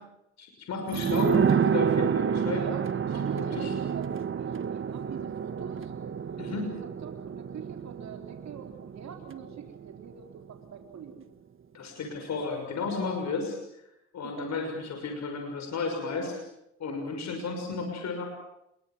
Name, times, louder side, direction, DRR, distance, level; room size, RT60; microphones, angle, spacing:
voice 1, 0.4-2.6 3.2-3.7 6.4-6.7 11.7-13.6 14.1-16.4 16.8-18.2, left 4 dB, 65° left, 4 dB, 6.2 m, -33 dB
sound 1, 0.9-10.2 10.5-10.6, right 7 dB, 45° right, 1.4 m, -29 dB
voice 2, 2.4-5.9 6.4-6.8 7.0-11.3 14.2-14.5, right 7 dB, 65° right, 4 dB, 3.8 m, -44 dB
28.0 x 23.0 x 7.6 m, 0.82 s
cardioid pair, 90°, 30 cm